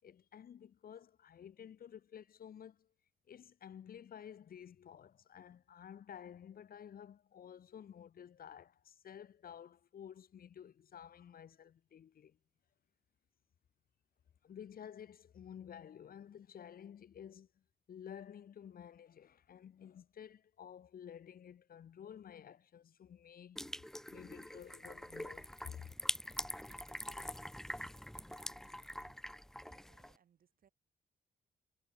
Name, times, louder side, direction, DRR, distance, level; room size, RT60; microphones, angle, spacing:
voice 1, 0.0-2.9 3.3-12.4 14.4-17.5 17.9-23.6 24.1-25.9, left 9 dB, 65° left, 7.0 m, -52 dB
sound 1, 23.6-30.2, left 1 dB, 5° left, 0.5 m, -44 dB
voice 2, 29.6-30.7, right 8 dB, 60° right, 7.9 m, -71 dB
cardioid pair, 125°, 16 cm